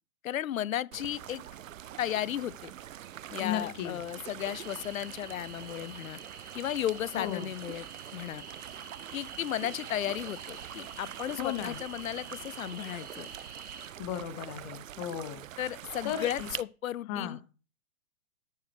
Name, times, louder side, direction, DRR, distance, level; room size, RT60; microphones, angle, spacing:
voice 1, 0.2-1.4 2.0-2.7 3.3-6.2 6.5-7.9 8.1-8.4 9.1-13.3 15.6-17.5, left 11 dB, 65° left, 0.6 m, -34 dB
sound 1, 0.9-16.6, right 11 dB, 60° right, 0.6 m, -45 dB
voice 2, 3.4-4.0 7.1-7.5 11.4-11.8 14.0-15.4 16.0-16.5 17.1-17.4, left 10 dB, 30° left, 0.9 m, -35 dB
sound 2, 4.4-13.9, right 5 dB, 80° right, 1.9 m, -48 dB
13.0 x 7.4 x 3.3 m
figure-of-eight pair, 115°, 44 cm